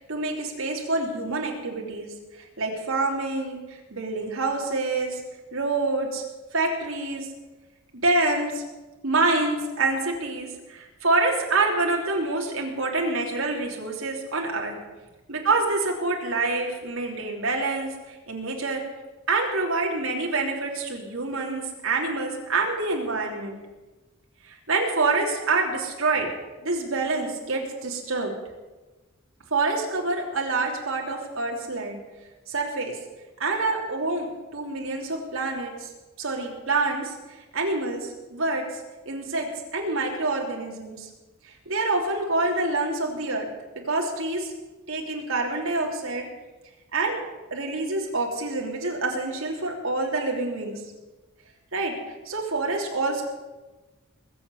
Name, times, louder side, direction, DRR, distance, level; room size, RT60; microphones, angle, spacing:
voice 1, 0.0-5.2 5.5-6.2 6.5-7.3 8.0-8.6 9.0-14.7 15.3-18.8 19.3-23.6 24.5-26.3 26.6-28.3 29.5-32.0 32.5-32.9 33.4-34.3 34.5-35.9 36.2-37.1 37.5-38.6 39.0-41.1 41.4-43.5 43.9-44.5 44.9-46.3 46.9-47.2 47.5-50.8 51.7-51.9 52.2-53.2, right 3 dB, 80° right, 0 dB, 3.2 m, -26 dB
21.0 x 7.8 x 7.9 m, 1.2 s
head